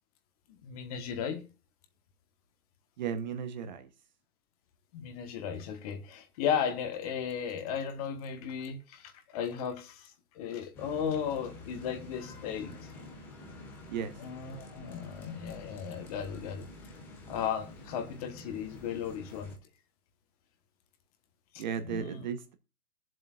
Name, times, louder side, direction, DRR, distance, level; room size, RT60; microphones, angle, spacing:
voice 1, 0.5-1.5 4.9-12.7 14.2-16.7 17.3-19.5 21.5-22.3, left 7 dB, 25° left, 1.3 m, -35 dB
voice 2, 3.0-3.9 13.9-14.2 21.6-22.6, right 7 dB, 30° right, 0.9 m, -35 dB
sound 1, 10.7-19.6, left 1 dB, 5° left, 0.6 m, -48 dB
22.0 x 7.6 x 2.4 m
hypercardioid pair, 155°, 44 cm